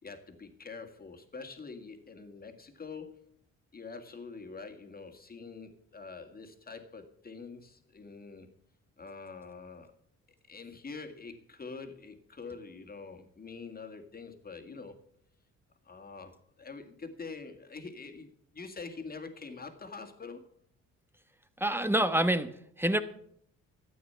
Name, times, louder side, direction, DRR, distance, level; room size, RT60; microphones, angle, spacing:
voice 1, 0.0-3.4 3.7-8.5 9.0-9.9 10.5-15.0 15.8-20.5, left 4 dB, 30° left, 6 dB, 2.1 m, -45 dB
voice 2, 21.6-23.0, right 1 dB, 5° right, 10 dB, 1.1 m, -27 dB
12.5 x 8.7 x 5.7 m, 0.63 s
cardioid pair, 90°, 30 cm